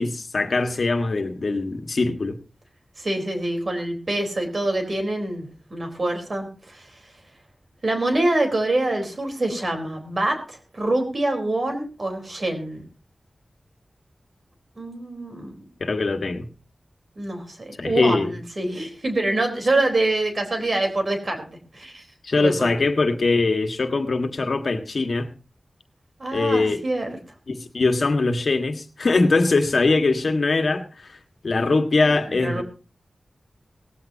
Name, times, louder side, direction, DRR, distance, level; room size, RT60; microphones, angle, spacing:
voice 1, 0.0-2.4 15.8-16.5 17.8-18.3 22.2-25.3 26.3-26.8 27.5-31.2 31.4-32.6, left 3 dB, 65° left, 6 dB, 1.7 m, -22 dB
voice 2, 3.0-7.1 7.8-12.8 14.8-15.7 17.2-21.4 21.7-22.0 22.4-22.9 26.2-27.1 32.1-32.6, right 2 dB, 50° right, 4 dB, 4.0 m, -25 dB
18.0 x 15.0 x 2.8 m, 0.34 s
wide cardioid pair, 95°, 0 cm